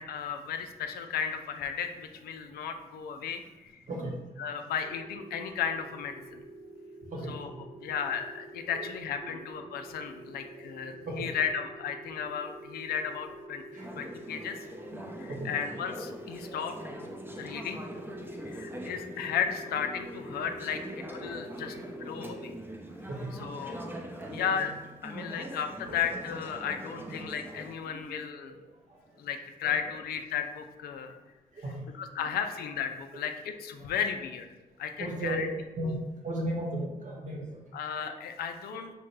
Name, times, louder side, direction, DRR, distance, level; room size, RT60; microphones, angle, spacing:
voice 1, 0.0-3.7 4.4-6.4 7.3-7.5 7.8-13.6 13.9-14.6 15.4-16.8 17.4-17.8 18.5-20.8 21.1-22.5 23.4-23.8 24.3-24.7 25.0-28.6 29.2-31.1 32.2-34.5 34.8-35.5 37.7-38.9, left 7 dB, 75° left, 6 dB, 0.4 m, -34 dB
sound 1, 4.8-22.5, right 1 dB, 5° left, 1.1 m, -47 dB
voice 2, 10.2-11.5 12.1-12.2 13.7-14.1 14.7-15.6 16.4-16.7 17.3-17.6 18.2-19.0 20.7-22.5 23.1-23.7 24.1-24.5 25.2-25.3 25.8-26.3 26.5-27.1 27.8-28.0 28.4-28.5 28.9-29.0 29.8-29.9 31.5-31.8 32.2-32.4 33.8-33.9 35.0-36.0 36.2-37.6 38.0-38.1 38.7-38.9, right 1 dB, 55° right, -2 dB, 1.2 m, -39 dB
Conversation / Chatter, 13.8-27.7, right 1 dB, 15° right, 0.6 m, -43 dB
4.8 x 2.1 x 3.2 m, 1.1 s
supercardioid pair, 50°, 16 cm